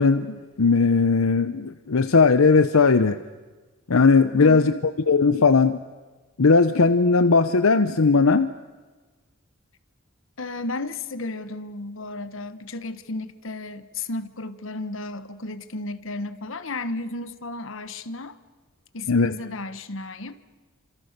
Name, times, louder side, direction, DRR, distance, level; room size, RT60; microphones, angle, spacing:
voice 1, 0.0-3.2 3.9-4.7 5.1-5.8 6.4-8.5 19.1-19.3, left 4 dB, 80° left, 11 dB, 0.8 m, -18 dB
voice 2, 4.4-4.8 10.4-18.4 18.9-20.4, left 2 dB, 65° left, 11 dB, 1.3 m, -33 dB
29.5 x 26.5 x 6.7 m, 1.3 s
head